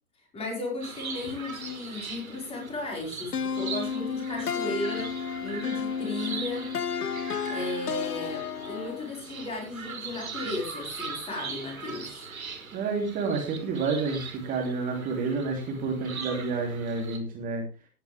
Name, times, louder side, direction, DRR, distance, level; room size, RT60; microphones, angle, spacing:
voice 1, 0.3-6.7 7.4-12.3, left 2 dB, 15° left, 0 dB, 5.5 m, -35 dB
sound 1, 0.8-17.2, right 5 dB, 65° right, 4.1 m, -41 dB
sound 2, 3.3-9.1, left 6 dB, 85° left, 0.7 m, -32 dB
voice 2, 12.7-17.6, right 4 dB, 20° right, 2 dB, 3.0 m, -29 dB
15.5 x 10.5 x 3.5 m, 0.30 s
figure-of-eight pair, 120°, 44 cm